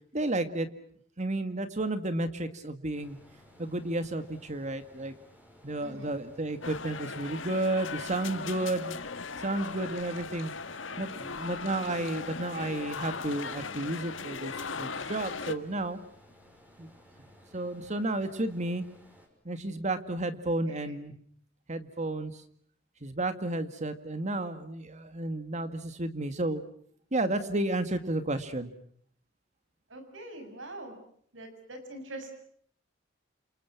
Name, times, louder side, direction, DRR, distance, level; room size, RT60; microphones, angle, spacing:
voice 1, 0.1-0.7 1.2-3.2 3.6-5.1 5.6-9.0 9.4-10.5 11.0-14.5 14.8-16.0 16.8-16.9 17.5-18.9 19.5-21.1 21.7-22.3 23.0-26.6 27.1-28.7, right 2 dB, 40° right, 10 dB, 2.0 m, -32 dB
sound 1, 2.9-19.3, equal, 10° right, 6.0 m, -57 dB
voice 2, 5.8-6.1 20.7-20.9 29.9-31.0 31.3-32.3, right 1 dB, 70° right, 7 dB, 6.9 m, -43 dB
sound 2, 6.6-15.6, left 5 dB, 75° left, 1.7 m, -38 dB
29.0 x 28.0 x 6.1 m, 0.62 s
head